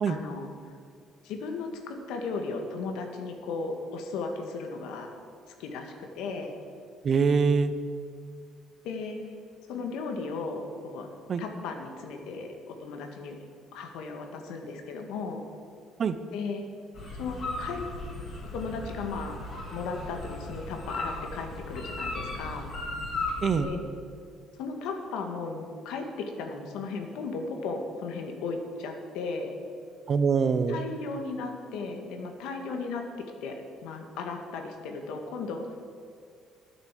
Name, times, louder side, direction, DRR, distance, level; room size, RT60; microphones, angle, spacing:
voice 1, 0.1-0.5 1.2-5.1 5.6-6.5 8.8-9.2 9.7-11.1 11.4-13.4 13.7-15.4 16.3-16.6 17.2-17.8 18.5-19.4 19.7-22.7 23.6-23.8 24.5-29.5 30.7-33.0 33.4-35.8, left 4 dB, 85° left, 4 dB, 1.9 m, -36 dB
voice 2, 7.0-7.7 11.3-11.4 16.0-16.2 23.4-23.7 30.1-30.8, right 5 dB, 30° right, 11 dB, 0.7 m, -24 dB
sound 1, 16.9-23.6, left 2 dB, 35° left, 2.9 m, -36 dB
12.5 x 9.4 x 7.6 m, 2.2 s
cardioid pair, 175°, 0 cm